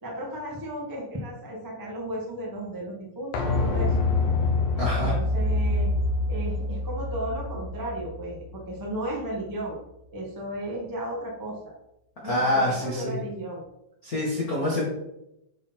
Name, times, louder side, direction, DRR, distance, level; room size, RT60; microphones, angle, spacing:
voice 1, 0.0-3.9 4.7-5.9 6.3-9.8 10.1-11.7 12.2-13.6, right 1 dB, 20° right, -2 dB, 0.5 m, -34 dB
sound 1, 3.3-9.0 9.3-9.4, left 2 dB, 80° left, 3.1 m, -26 dB
voice 2, 4.8-5.2 12.2-13.2 14.0-14.9, left 1 dB, 40° left, -5 dB, 1.4 m, -26 dB
9.6 x 4.2 x 4.5 m, 0.85 s
omnidirectional pair, 4.0 m